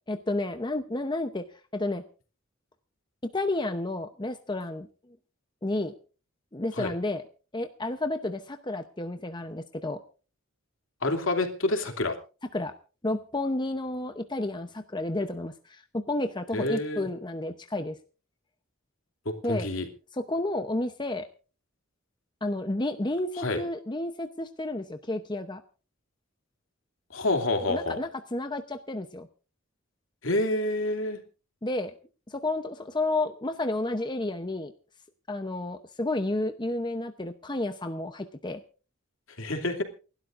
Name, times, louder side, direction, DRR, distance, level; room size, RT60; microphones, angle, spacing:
voice 1, 0.1-1.4 1.7-2.0 3.3-4.9 5.6-5.9 6.5-7.2 7.5-10.0 12.5-12.7 13.0-18.0 19.4-19.7 20.1-21.3 22.4-25.6 27.7-29.3 31.6-31.9 32.3-34.7 35.3-38.6, left 2 dB, 20° left, 7 dB, 0.8 m, -31 dB
voice 2, 11.0-12.1 16.5-17.1 19.2-19.9 23.4-23.6 27.1-28.0 30.2-31.2 39.4-39.8, left 2 dB, 70° left, 5 dB, 2.8 m, -28 dB
29.0 x 12.5 x 2.6 m, 0.36 s
head